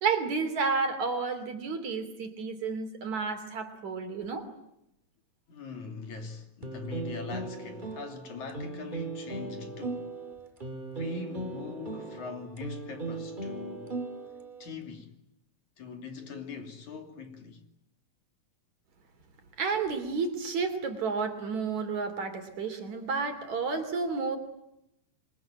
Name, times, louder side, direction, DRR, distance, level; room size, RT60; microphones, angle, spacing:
voice 1, 0.0-4.5 19.6-24.4, right 4 dB, 55° right, 4.4 m, -31 dB
voice 2, 5.5-10.1 10.9-13.9 14.6-15.2 15.8-17.6, left 5 dB, 60° left, 4.2 m, -41 dB
sound 1, 6.6-14.7, right 3 dB, 15° right, 2.3 m, -38 dB
28.0 x 23.5 x 9.0 m
omnidirectional pair, 3.9 m